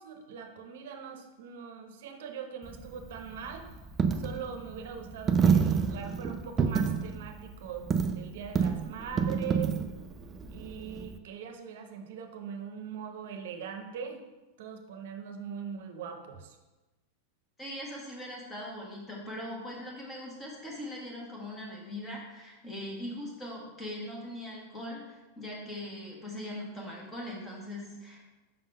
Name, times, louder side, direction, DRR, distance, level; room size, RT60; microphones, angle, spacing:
voice 1, 0.0-3.7 4.2-9.8 10.5-14.2 14.6-16.6, right 7 dB, 60° right, 5 dB, 0.8 m, -41 dB
Coin (dropping), 2.6-11.2, right 6 dB, 15° right, 0.3 m, -29 dB
voice 2, 17.6-28.3, left 1 dB, 10° left, -3 dB, 1.2 m, -41 dB
5.7 x 3.9 x 5.3 m, 1.1 s
supercardioid pair, 180°, 0 cm